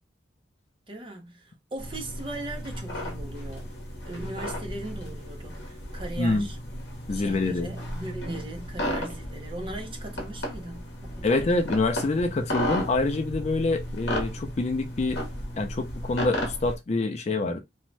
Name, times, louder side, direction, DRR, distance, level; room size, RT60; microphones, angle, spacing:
voice 1, 0.9-3.7 4.1-6.6 7.1-11.4, right 2 dB, 30° right, 0.7 m, -39 dB
sound 1, 1.8-16.8, equal, 65° left, 0.9 m, -34 dB
voice 2, 6.2-6.5 7.1-7.7 11.2-15.2 15.6-17.6, left 2 dB, 35° left, 0.4 m, -26 dB
2.6 x 2.1 x 3.1 m
head